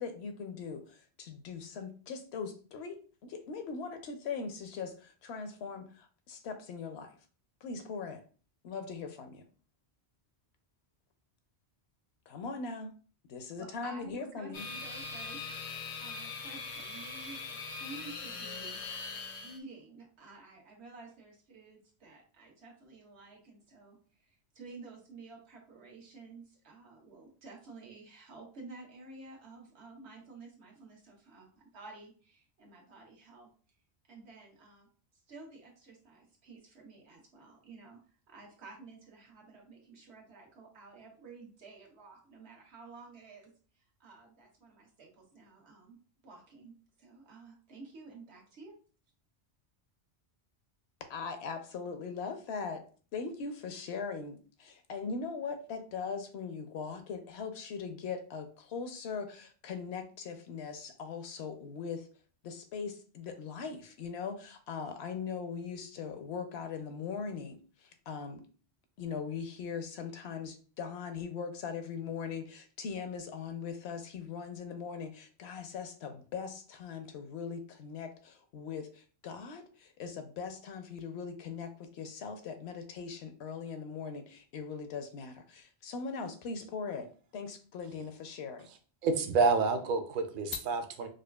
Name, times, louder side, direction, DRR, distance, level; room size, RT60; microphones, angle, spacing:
voice 1, 0.0-7.1 7.6-8.2 8.6-9.4 12.3-12.9 13.3-14.7 51.1-52.8 53.1-62.1 62.4-68.4 69.0-87.1 87.3-88.7, left 5 dB, 75° left, 7 dB, 0.8 m, -40 dB
voice 2, 13.6-19.0 19.4-31.5 31.7-33.5 34.1-34.9 35.3-46.0 46.2-48.7, right 3 dB, 80° right, -1 dB, 1.3 m, -52 dB
Electric Motor Whir, 14.5-19.6, left 4 dB, 50° left, 0.5 m, -41 dB
voice 3, 89.0-91.1, right 4 dB, 60° right, 7 dB, 0.6 m, -28 dB
4.9 x 2.3 x 2.3 m, 0.40 s
omnidirectional pair, 1.1 m